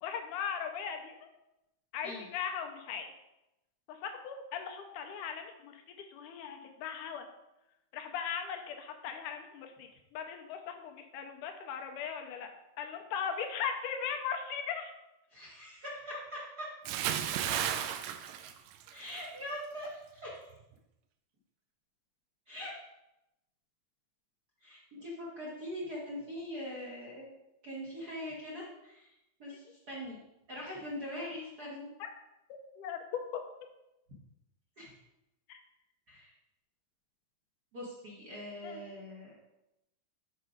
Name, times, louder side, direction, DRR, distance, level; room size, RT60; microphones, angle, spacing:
voice 1, 0.0-1.1 1.9-3.1 3.9-7.3 7.9-12.5 12.8-14.9 29.5-29.6 32.0-32.1 32.8-33.4 35.5-35.6 38.6-38.8, left 7 dB, 80° left, 5 dB, 2.2 m, -38 dB
voice 2, 15.3-16.6 18.9-20.5 22.5-22.7 24.6-27.3 27.6-29.1 29.4-30.2 30.5-31.9 34.8-34.9 36.1-36.3 37.7-39.4, left 1 dB, 45° right, -5 dB, 1.3 m, -42 dB
Bathtub (filling or washing) / Splash splatter, 16.8-19.3 19.6-19.9, right 10 dB, 90° right, 2.2 m, -34 dB
6.7 x 6.0 x 4.9 m, 0.92 s
omnidirectional pair, 3.7 m